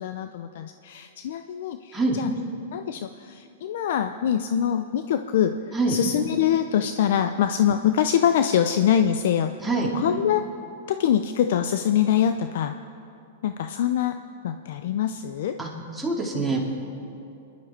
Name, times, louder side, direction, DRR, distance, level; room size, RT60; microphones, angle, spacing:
voice 1, 0.0-2.3 2.7-9.7 9.9-10.5 10.9-12.8 13.4-14.2 14.4-15.6, left 9 dB, 65° left, 9 dB, 0.6 m, -24 dB
voice 2, 15.6-16.6, right 3 dB, 5° right, -4 dB, 2.7 m, -25 dB
28.5 x 11.5 x 4.4 m, 2.7 s
hypercardioid pair, 145°, 0 cm